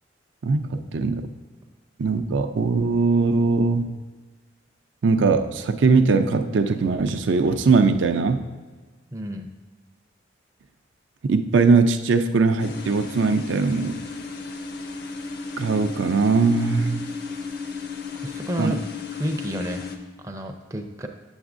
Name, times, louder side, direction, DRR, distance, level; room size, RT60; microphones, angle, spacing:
voice 1, 0.4-1.3 2.0-3.9 5.0-8.4 11.2-14.0 15.6-17.0 18.6-18.8, right 4 dB, 85° right, 7 dB, 0.4 m, -20 dB
voice 2, 9.1-9.5 18.1-18.8 19.1-19.9 20.2-21.1, equal, 15° right, 4 dB, 0.4 m, -30 dB
sound 1, 12.6-20.0, left 4 dB, 55° left, 0.6 m, -34 dB
7.9 x 7.1 x 2.5 m, 1.3 s
head